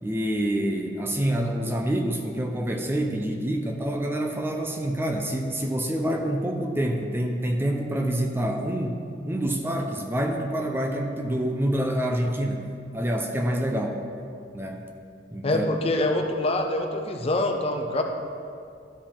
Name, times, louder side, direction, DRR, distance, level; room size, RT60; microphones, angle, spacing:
voice 1, 0.0-14.0 14.5-14.8 15.3-15.6, right 1 dB, 10° right, 2 dB, 0.5 m, -27 dB
voice 2, 15.4-18.0, left 1 dB, 30° left, 4 dB, 0.6 m, -25 dB
13.0 x 5.0 x 3.5 m, 2.4 s
head